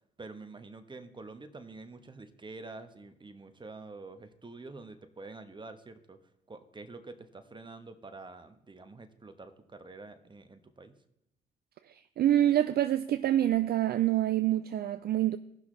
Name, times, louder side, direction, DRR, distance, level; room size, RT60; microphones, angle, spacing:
voice 1, 0.2-6.2 6.5-10.9, right 3 dB, 20° right, 1.2 m, -47 dB
voice 2, 11.9-15.4, right 12 dB, 50° right, 0.4 m, -26 dB
17.0 x 6.0 x 3.2 m
hypercardioid pair, 50°, 21 cm